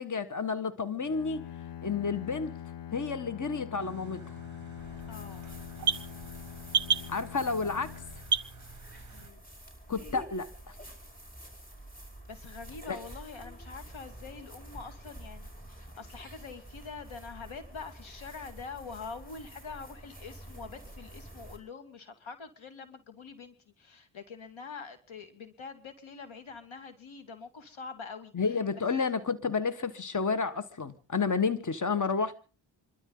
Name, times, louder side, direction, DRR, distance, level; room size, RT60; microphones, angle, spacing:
voice 1, 0.0-1.5 1.8-2.5 2.9-4.4 7.1-7.9 9.9-10.8 12.9-13.0 28.3-32.3, left 5 dB, 40° left, 1.6 m, -31 dB
Bowed string instrument, 1.0-9.0, left 10 dB, 65° left, 0.7 m, -44 dB
sound 1, 3.8-9.3, right 6 dB, 40° right, 0.7 m, -35 dB
sound 2, 4.8-21.6, right 1 dB, 20° left, 5.5 m, -48 dB
voice 2, 5.1-5.5 9.1-9.4 12.3-28.3 28.8-28.9, left 5 dB, 85° left, 2.2 m, -45 dB
27.5 x 13.0 x 3.9 m
cardioid pair, 60°, 47 cm